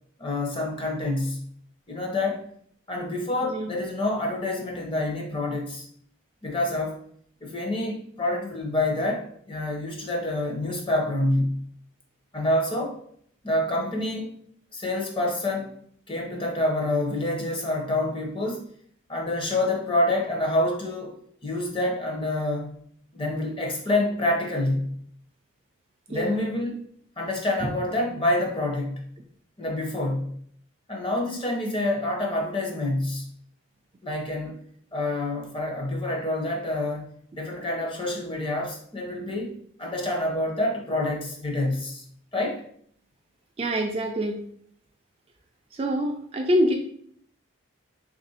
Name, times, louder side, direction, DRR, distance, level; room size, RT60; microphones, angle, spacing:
voice 1, 0.2-1.5 1.9-2.4 2.9-5.9 6.4-7.0 7.4-11.7 12.3-13.0 13.4-14.3 14.7-15.7 16.1-18.7 19.1-21.2 21.4-22.8 23.1-25.0 26.1-26.8 27.2-29.1 29.6-30.4 30.9-33.3 34.0-34.5 34.9-39.5 39.8-42.0 42.3-42.6, left 1 dB, 25° left, 0 dB, 0.7 m, -27 dB
voice 2, 43.6-44.4 45.8-46.7, equal, 30° right, 2 dB, 0.3 m, -25 dB
3.3 x 2.5 x 4.1 m, 0.64 s
head